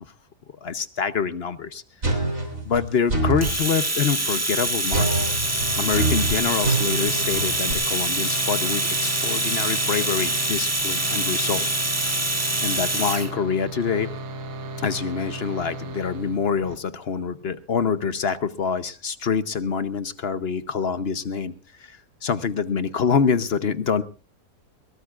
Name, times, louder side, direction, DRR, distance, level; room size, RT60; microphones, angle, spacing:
voice 1, 0.6-1.8 2.7-5.1 5.7-11.7 12.6-14.1 14.8-21.5 21.8-24.0, left 6 dB, 50° left, 13 dB, 0.9 m, -26 dB
sound 1, 2.0-3.6 4.9-7.7, right 2 dB, 55° right, 3.9 m, -25 dB
Domestic sounds home sounds, 3.4-13.3, right 1 dB, 10° right, 1.2 m, -25 dB
sound 2, 5.4-16.8, right 1 dB, 85° right, 1.9 m, -35 dB
22.0 x 18.0 x 2.4 m, 0.34 s
omnidirectional pair, 1.7 m